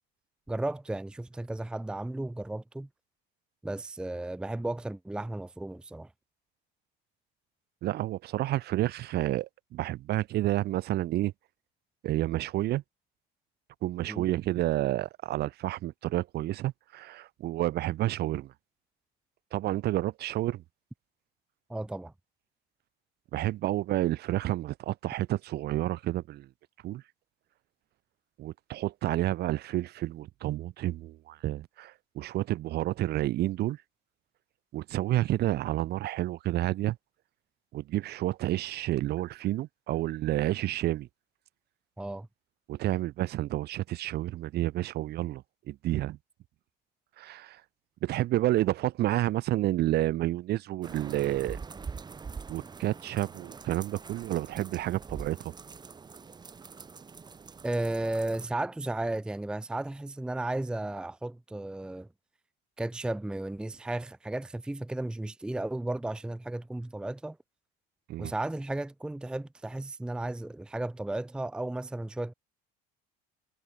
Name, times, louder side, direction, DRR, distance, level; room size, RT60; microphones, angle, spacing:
voice 1, 0.5-2.9 3.6-6.1 14.1-14.2 21.7-22.1 42.0-42.3 57.6-62.1 62.8-67.4 68.2-72.3, right 2 dB, 5° right, 0.6 m, -34 dB
voice 2, 7.8-11.3 12.0-12.8 13.8-18.5 19.5-20.6 23.3-26.5 26.8-27.0 28.4-33.8 34.7-37.0 37.7-41.1 42.7-46.2 47.2-47.6 48.0-51.6 52.5-55.5 68.1-68.3, right 15 dB, 55° right, 1.6 m, -30 dB
sound 1, 50.8-58.5, right 5 dB, 20° right, 4.4 m, -44 dB
cardioid pair, 140°, 20 cm